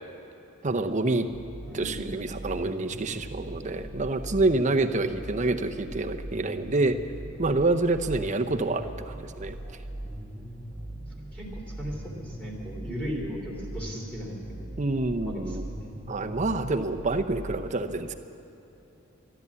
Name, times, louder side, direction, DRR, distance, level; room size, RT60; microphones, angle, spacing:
voice 1, 0.6-1.3 1.7-7.0 7.4-9.6 14.8-15.6 16.1-18.1, right 2 dB, 35° right, 6 dB, 0.7 m, -27 dB
sound 1, 0.7-17.6, right 1 dB, 10° right, 1.3 m, -40 dB
voice 2, 1.7-2.4 11.3-14.7 15.2-16.0, equal, 5° left, -3 dB, 3.1 m, -37 dB
13.0 x 12.0 x 8.3 m, 3.0 s
head